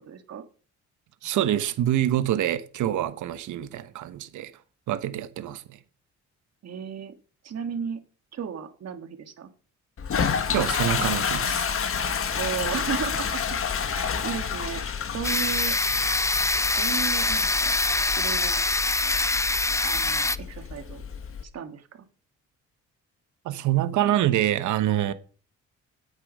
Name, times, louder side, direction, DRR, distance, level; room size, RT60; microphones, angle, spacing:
voice 1, 0.1-0.4 6.6-7.1 7.4-8.0 8.3-9.5 12.4-13.4 13.9-14.8 15.1-15.8 16.8-17.8 18.1-18.6 19.8-21.0 21.5-22.1, right 8 dB, 55° right, 1.8 m, -34 dB
voice 2, 1.2-4.5 4.9-5.8 10.5-11.7 23.4-25.1, right 12 dB, 75° right, 1.0 m, -26 dB
Toilet flush, 10.0-21.4, left 6 dB, 45° left, 1.4 m, -30 dB
sound 1, 15.2-20.4, left 2 dB, 10° left, 0.4 m, -24 dB
9.7 x 8.3 x 5.5 m
cardioid pair, 90°, 30 cm